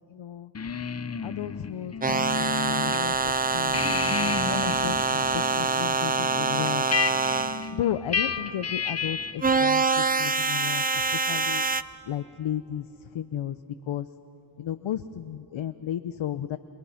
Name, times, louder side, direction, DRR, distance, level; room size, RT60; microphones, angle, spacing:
voice 1, 0.1-0.5 1.2-3.8 4.1-6.9 7.7-11.6 12.1-13.6 13.9-14.1 14.6-16.6, left 10 dB, 75° left, 11 dB, 0.7 m, -34 dB
sound 1, 0.5-3.0 3.3-9.5, left 5 dB, 30° left, 0.7 m, -32 dB
sound 2, 2.0-7.7 9.4-11.8, right 4 dB, 20° right, 0.5 m, -25 dB
sound 3, 2.9-14.1 14.6-15.0, left 1 dB, ahead, 6.6 m, -55 dB
29.0 x 22.5 x 5.7 m, 3.0 s
cardioid pair, 65°, 48 cm